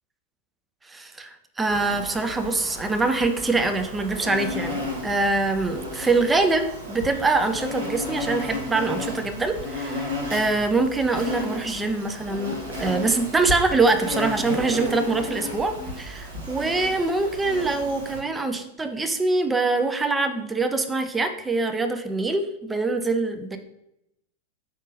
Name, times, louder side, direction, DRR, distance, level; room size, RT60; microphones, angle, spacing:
voice 1, 0.9-23.6, right 3 dB, 10° right, 7 dB, 0.5 m, -24 dB
Insect, 1.7-18.2, left 1 dB, 65° right, 1.6 m, -33 dB
5.0 x 3.6 x 2.7 m, 0.82 s
figure-of-eight pair, 90°, 0 cm